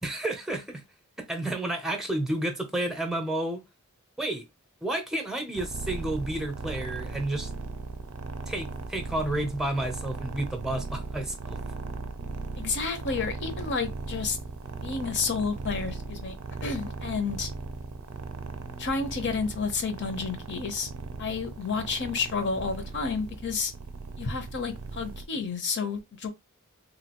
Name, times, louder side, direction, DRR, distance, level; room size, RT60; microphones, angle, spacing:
voice 1, 0.0-0.8 1.2-3.6 4.2-4.4 4.8-7.5 8.5-11.6, right 1 dB, ahead, 0.7 m, -31 dB
sound 1, 5.5-25.2, right 3 dB, 70° right, 0.4 m, -38 dB
voice 2, 12.6-14.4 14.8-16.3 16.6-17.5 18.8-20.9 21.2-23.7 24.2-26.3, left 5 dB, 55° left, 0.8 m, -30 dB
3.1 x 2.5 x 2.9 m
head